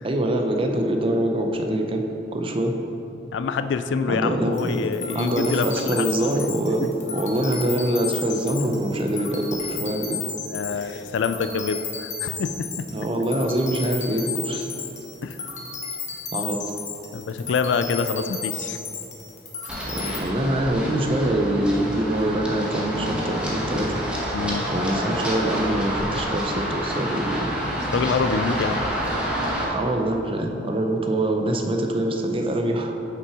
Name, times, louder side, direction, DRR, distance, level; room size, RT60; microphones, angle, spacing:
voice 1, 0.0-2.0 2.3-2.7 4.1-4.8 5.1-6.8 7.1-10.2 12.9-14.7 16.3-16.6 19.9-24.0 24.7-27.6 28.7-28.8 29.7-33.0, right 1 dB, 30° right, 3 dB, 0.6 m, -24 dB
voice 2, 3.3-6.1 6.8-6.9 10.5-12.9 15.2-15.4 17.1-18.8 19.6-19.9 24.3-24.7 27.9-28.9, left 5 dB, 80° left, 10 dB, 0.3 m, -26 dB
sound 1, 4.5-20.2, left 5 dB, 40° left, 1.1 m, -34 dB
Run, 19.7-29.6, equal, 5° right, 1.1 m, -28 dB
6.1 x 5.6 x 4.8 m, 3.0 s
head